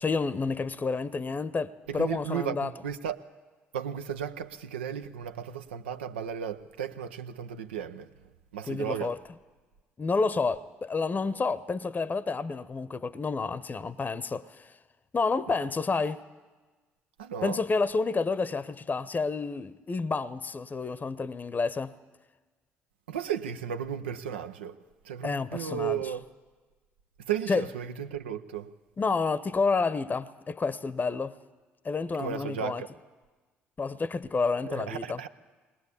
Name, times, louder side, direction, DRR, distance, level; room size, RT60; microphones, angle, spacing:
voice 1, 0.0-2.7 8.7-9.2 10.0-14.7 15.1-16.2 17.4-21.9 25.2-26.0 27.5-27.7 29.0-31.3 31.8-32.8 33.8-35.2, left 4 dB, 30° left, 0.8 m, -29 dB
voice 2, 1.9-3.2 3.7-8.1 8.5-9.2 17.2-17.6 23.1-24.8 25.0-26.2 27.3-28.7 32.2-32.9 34.7-35.3, right 8 dB, 85° right, 0.7 m, -34 dB
20.5 x 19.5 x 8.3 m
hypercardioid pair, 55°, 6 cm